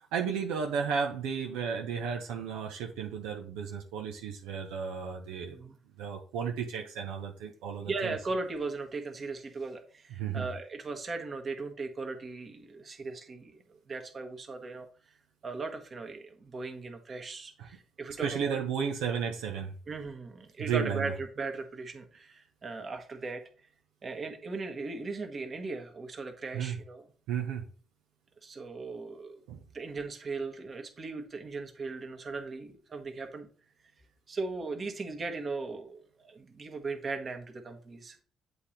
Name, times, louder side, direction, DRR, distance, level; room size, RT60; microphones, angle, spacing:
voice 1, 0.0-5.6 6.0-8.2 10.2-10.5 17.6-17.7 18.2-19.7 20.6-21.1 26.5-26.8 27.3-27.7 29.5-29.6, right 7 dB, 90° right, 2 dB, 0.7 m, -33 dB
voice 2, 7.8-14.9 15.4-18.6 19.9-23.4 24.0-27.0 28.4-29.4 29.7-33.5 34.3-38.2, right 3 dB, 45° right, 5 dB, 1.4 m, -38 dB
8.0 x 3.0 x 5.0 m, 0.42 s
supercardioid pair, 65°, 0 cm